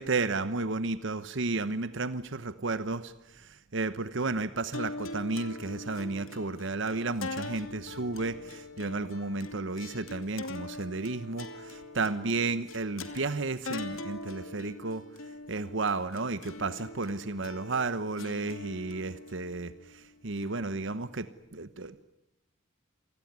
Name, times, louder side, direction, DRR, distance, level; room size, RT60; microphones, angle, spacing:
voice 1, 0.0-15.0 15.5-22.0, right 3 dB, 65° right, 13 dB, 1.1 m, -33 dB
sound 1, 4.7-21.2, left 2 dB, 80° left, 2.7 m, -43 dB
27.5 x 19.5 x 9.6 m, 0.87 s
head